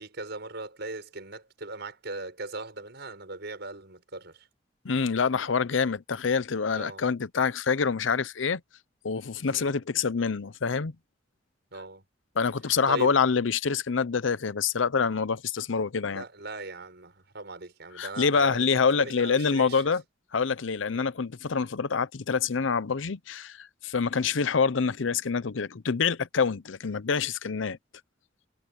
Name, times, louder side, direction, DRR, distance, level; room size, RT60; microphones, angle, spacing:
voice 1, 0.0-4.5 6.7-7.1 9.5-9.8 11.7-12.0 12.9-13.2 16.1-19.9 20.9-21.1, right 2 dB, 60° right, 6.6 m, -39 dB
voice 2, 4.8-8.6 9.0-10.9 12.4-16.2 18.0-20.0 20.3-27.8, left 5 dB, 90° left, 0.7 m, -26 dB
head